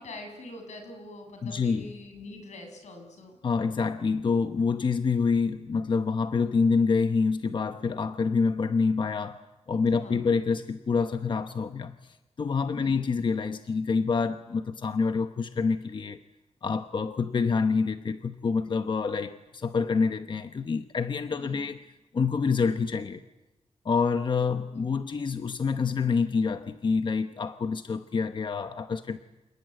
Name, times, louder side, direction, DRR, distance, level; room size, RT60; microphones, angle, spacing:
voice 1, 0.0-3.4 10.0-10.2 12.8-13.0 21.4-21.8 24.7-24.9, left 2 dB, 90° left, 4 dB, 7.1 m, -44 dB
voice 2, 1.4-1.9 3.4-9.4 9.7-16.2 16.6-21.8 22.1-23.2 23.8-29.2, left 5 dB, 45° left, 9 dB, 1.0 m, -27 dB
28.5 x 19.0 x 9.1 m, 1.0 s
wide cardioid pair, 150°, 12 cm